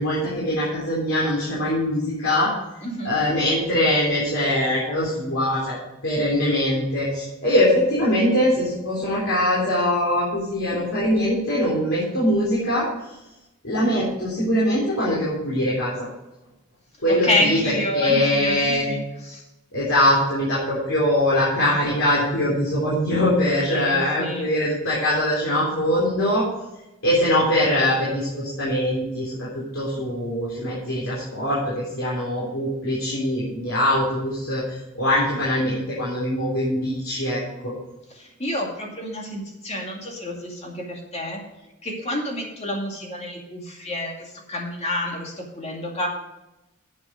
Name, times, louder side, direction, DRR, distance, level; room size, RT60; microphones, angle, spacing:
voice 1, 0.0-2.5 3.0-5.8 6.0-12.9 13.6-15.9 17.0-17.6 17.9-18.9 19.7-26.4 27.0-29.5 29.7-37.7, left 1 dB, 65° left, -7 dB, 3.6 m, -22 dB
voice 2, 2.8-3.2 17.1-18.6 18.9-19.4 23.7-24.5 38.1-41.4 41.8-46.1, left 1 dB, 30° left, 0 dB, 2.3 m, -28 dB
10.5 x 7.9 x 5.1 m, 0.97 s
head